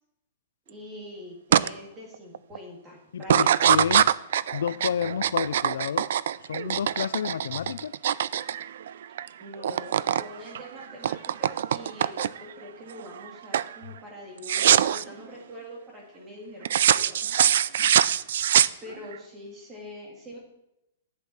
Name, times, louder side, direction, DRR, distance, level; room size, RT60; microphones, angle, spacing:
voice 1, 0.7-3.7 9.4-17.7 18.8-20.4, left 1 dB, 15° right, 2.2 m, -43 dB
sound 1, 1.5-1.7 2.1-2.6 3.2-9.3 9.5-10.3 10.6-12.5 13.0-13.3 13.5-13.8 14.4-15.0 16.7-19.2, right 10 dB, 60° right, 0.3 m, -23 dB
voice 2, 3.1-4.1 4.5-6.1 6.5-7.9 17.8-17.9, left 8 dB, 85° left, 0.3 m, -30 dB
11.5 x 8.1 x 4.3 m
hypercardioid pair, 175°, 0 cm